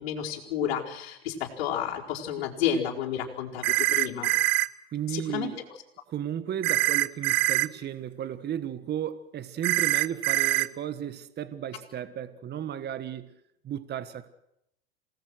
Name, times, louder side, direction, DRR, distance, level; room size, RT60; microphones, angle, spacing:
voice 1, 0.0-4.3 5.1-5.5, left 9 dB, 70° left, 4.6 m, -31 dB
sound 1, 3.6-4.7 6.6-7.7 9.6-10.7, right 20 dB, 65° right, 0.8 m, -24 dB
voice 2, 4.9-5.6 6.1-13.3 13.6-14.3, right 10 dB, 35° right, 1.4 m, -34 dB
28.0 x 19.0 x 6.4 m
hypercardioid pair, 90°, 31 cm